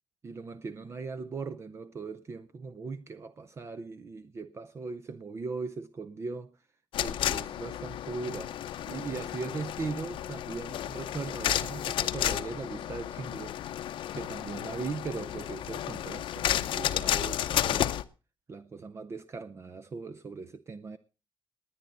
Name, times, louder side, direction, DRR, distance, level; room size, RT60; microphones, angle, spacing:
voice 1, 0.2-6.6 7.0-8.5 8.9-13.6 14.1-18.0 18.5-21.0, right 4 dB, 30° right, 0.6 m, -39 dB
sound 1, 6.9-18.0, left 11 dB, 80° left, 0.7 m, -32 dB
20.5 x 9.4 x 3.9 m
cardioid pair, 145°, 9 cm